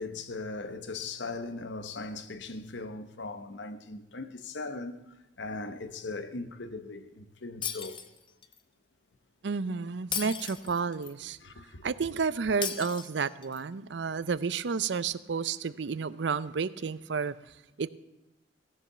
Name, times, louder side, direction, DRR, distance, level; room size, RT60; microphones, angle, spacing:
voice 1, 0.0-5.0 5.4-8.0 11.4-11.9, left 3 dB, 80° left, 1.0 m, -39 dB
Shatter, 7.6-8.6 10.1-11.1 12.6-13.6, left 7 dB, 25° left, 0.8 m, -36 dB
voice 2, 9.4-11.4 11.8-17.3 17.8-17.9, right 5 dB, 70° right, 0.5 m, -31 dB
16.0 x 7.3 x 6.8 m
head